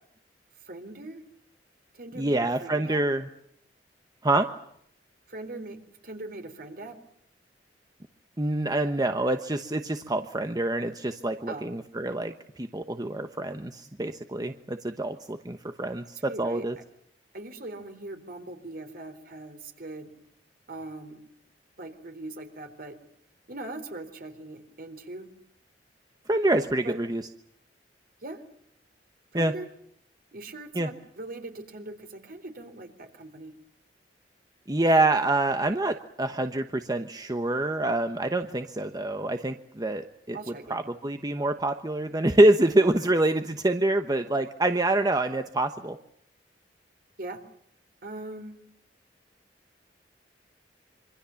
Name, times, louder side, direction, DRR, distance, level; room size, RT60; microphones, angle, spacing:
voice 1, 0.6-1.2 1.9-3.0 5.3-7.0 11.5-11.7 16.3-16.6 17.3-20.1 20.7-21.2 21.8-23.0 23.5-25.3 26.8-27.0 28.2-28.4 29.3-29.7 30.3-33.5 40.3-40.8 47.2-47.4 48.0-48.6, right 2 dB, 55° right, 8 dB, 3.8 m, -40 dB
voice 2, 2.1-3.3 4.2-4.5 8.4-16.8 26.3-27.2 29.3-29.5 30.7-30.9 34.7-40.4 40.7-46.0, right 2 dB, 20° right, 7 dB, 1.0 m, -26 dB
26.5 x 25.0 x 7.1 m, 0.70 s
head